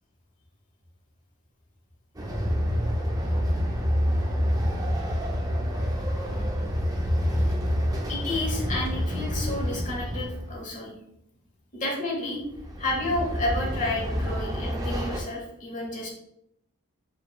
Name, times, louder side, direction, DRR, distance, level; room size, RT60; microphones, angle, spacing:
Train, 2.2-10.6 12.5-15.2, equal, 15° right, 0.5 m, -27 dB
voice 1, 8.1-10.9 11.7-12.4 12.8-16.1, left 1 dB, 35° left, -1 dB, 1.1 m, -31 dB
4.7 x 3.2 x 2.3 m, 0.78 s
head